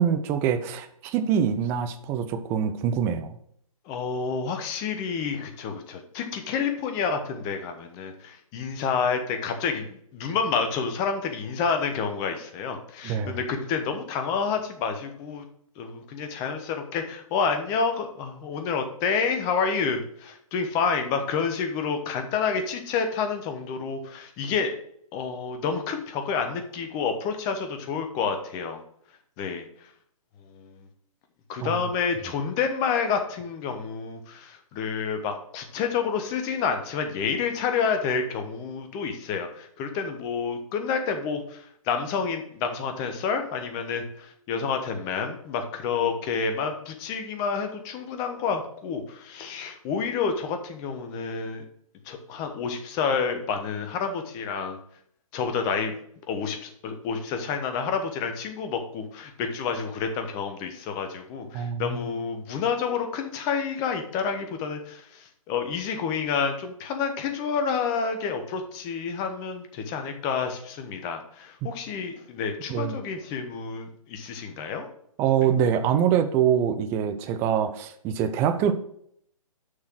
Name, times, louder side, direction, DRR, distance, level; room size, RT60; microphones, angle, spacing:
voice 1, 0.0-3.4 13.0-13.4 31.6-31.8 61.5-62.1 71.6-71.7 72.7-73.0 75.2-78.7, right 8 dB, 15° right, 9 dB, 0.4 m, -24 dB
voice 2, 3.9-15.4 15.8-24.7 25.1-28.8 29.4-29.6 30.5-30.9 31.5-51.6 52.0-54.8 55.3-55.9 56.3-74.9, left 5 dB, 20° left, 6 dB, 1.0 m, -29 dB
6.5 x 5.8 x 6.1 m, 0.68 s
figure-of-eight pair, 135°, 18 cm